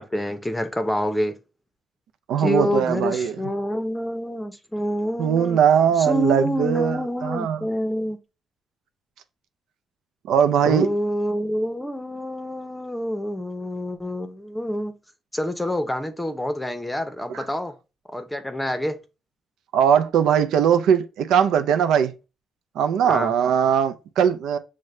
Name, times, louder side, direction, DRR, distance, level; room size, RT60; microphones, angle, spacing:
voice 1, 0.0-1.4 2.4-5.6 6.0-8.2 10.7-14.9 15.3-17.7 18.1-19.0 23.0-23.3, left 1 dB, 10° left, 0.7 m, -27 dB
voice 2, 2.3-3.4 5.2-7.6 10.3-10.9 17.3-17.4 19.7-22.1 22.8-24.6, right 8 dB, 80° right, 0.4 m, -20 dB
6.3 x 2.1 x 3.1 m
cardioid pair, 90°, 0 cm